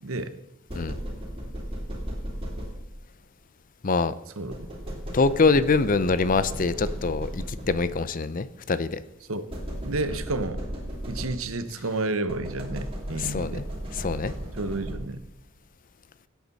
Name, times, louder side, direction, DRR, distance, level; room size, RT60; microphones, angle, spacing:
voice 1, 0.0-0.3 4.4-4.6 5.5-5.6 9.3-9.5 9.8-10.6 11.1-13.6 14.5-15.2, right 2 dB, 85° right, 11 dB, 1.0 m, -30 dB
sound 1, 0.7-3.2 4.5-8.1 9.5-11.7 12.3-15.4, equal, 25° right, 3.2 m, -36 dB
voice 2, 3.8-4.1 5.1-9.0 13.2-13.6 14.0-14.3, left 4 dB, 40° left, 15 dB, 0.5 m, -24 dB
17.0 x 8.3 x 4.1 m, 0.95 s
head